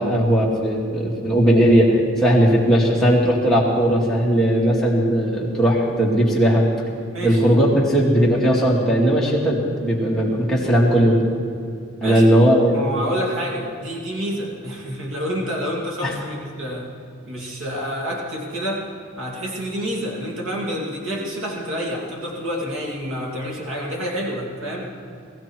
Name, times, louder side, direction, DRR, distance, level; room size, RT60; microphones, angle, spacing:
voice 1, 0.0-6.6 7.2-11.2 12.0-12.8 16.0-16.1, equal, ahead, -5 dB, 2.4 m, -17 dB
voice 2, 7.1-7.4 12.0-12.4 12.7-16.9 17.2-18.9 19.2-24.9, equal, 75° right, -2 dB, 2.8 m, -28 dB
19.5 x 15.0 x 4.6 m, 2.5 s
head